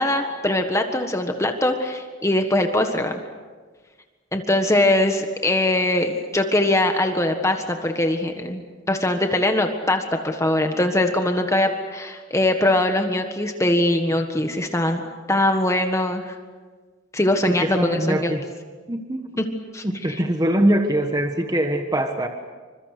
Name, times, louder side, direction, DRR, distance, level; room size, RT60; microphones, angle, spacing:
voice 1, 0.0-3.2 4.3-15.0 15.3-16.3 17.1-18.3 19.7-20.1, left 1 dB, 15° left, 5 dB, 1.6 m, -22 dB
voice 2, 17.5-18.4 18.9-19.3 19.8-22.3, right 1 dB, 20° right, 5 dB, 1.4 m, -22 dB
28.0 x 25.5 x 6.7 m, 1.4 s
head